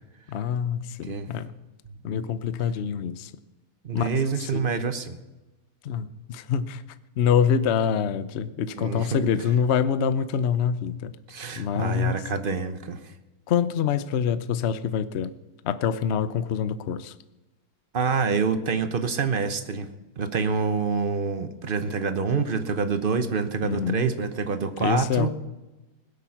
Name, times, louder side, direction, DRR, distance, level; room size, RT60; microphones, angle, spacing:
voice 1, 0.3-1.5 2.0-3.3 3.9-4.6 5.8-6.8 7.2-11.2 11.5-12.3 13.5-15.3 15.6-17.1 23.6-24.1 24.8-25.3, left 7 dB, 65° left, 14 dB, 0.6 m, -25 dB
voice 2, 3.8-5.2 8.8-9.3 11.3-13.0 17.9-19.9 20.2-25.3, right 5 dB, 40° right, 10 dB, 0.8 m, -27 dB
21.0 x 8.5 x 5.9 m, 1.1 s
omnidirectional pair, 2.1 m